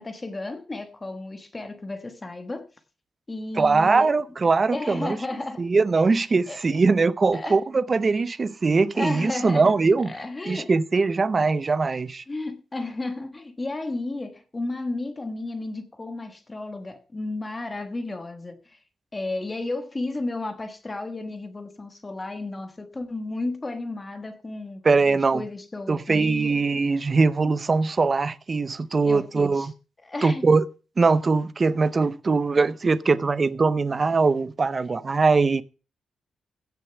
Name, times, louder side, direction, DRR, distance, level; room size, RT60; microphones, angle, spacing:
voice 1, 0.0-2.7 3.3-4.1 4.7-5.7 6.5-6.6 7.3-7.6 8.9-9.7 10.0-10.7 12.3-18.8 19.1-26.6 29.0-29.7 30.0-30.5, left 2 dB, 15° left, 1.3 m, -33 dB
voice 2, 3.6-5.2 5.6-10.1 10.5-12.2 24.8-25.4 25.9-29.7 30.2-30.6 31.0-35.6, right 4 dB, 25° right, 0.6 m, -21 dB
16.0 x 6.7 x 5.8 m
wide cardioid pair, 180°, 0 cm